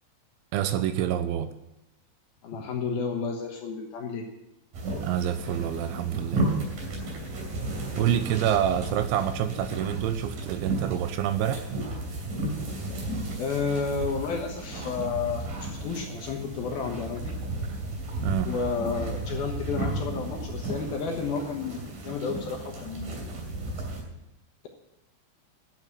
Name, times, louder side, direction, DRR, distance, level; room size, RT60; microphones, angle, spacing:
voice 1, 0.5-1.5 5.0-6.5 8.0-11.7 18.2-18.6, right 11 dB, 80° right, 10 dB, 3.0 m, -27 dB
voice 2, 2.4-4.3 13.4-17.4 18.4-23.2, left 5 dB, 65° left, 2 dB, 2.5 m, -31 dB
sound 1, 4.7-24.0, right 1 dB, 50° right, 4.3 m, -34 dB
12.0 x 7.8 x 9.8 m, 0.90 s
omnidirectional pair, 5.6 m